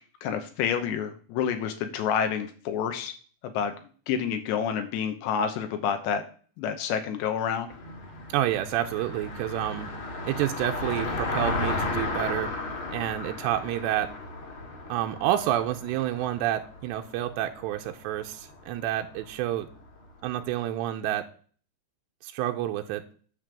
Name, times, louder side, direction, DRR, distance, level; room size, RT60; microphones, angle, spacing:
voice 1, 0.2-3.1 3.4-3.7 4.1-6.3 6.6-7.7, left 7 dB, 80° left, 6 dB, 3.1 m, -28 dB
Car passing by, 7.7-20.0, left 2 dB, 45° left, 1.9 m, -34 dB
voice 2, 8.3-9.9 10.3-12.5 12.9-14.1 14.9-19.7 20.2-21.2 22.2-23.0, right 12 dB, 85° right, 4 dB, 2.8 m, -29 dB
9.5 x 5.2 x 7.2 m, 0.43 s
omnidirectional pair, 5.1 m